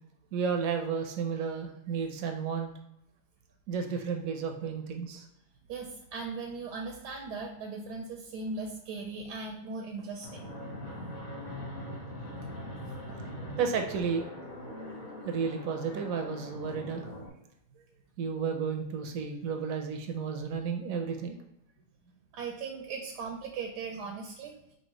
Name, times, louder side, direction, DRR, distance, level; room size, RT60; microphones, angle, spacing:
voice 1, 0.3-2.7 3.7-5.2 13.6-14.2 15.3-17.1 18.2-21.4, right 6 dB, 65° right, 4 dB, 0.9 m, -32 dB
voice 2, 5.7-10.5 11.1-11.2 12.8-13.6 22.3-24.5, right 4 dB, 80° right, 1 dB, 1.3 m, -39 dB
Fixed-wing aircraft airplane, 10.2-17.3, left 1 dB, 40° left, 0.8 m, -42 dB
5.5 x 2.8 x 3.0 m, 0.81 s
omnidirectional pair, 1.8 m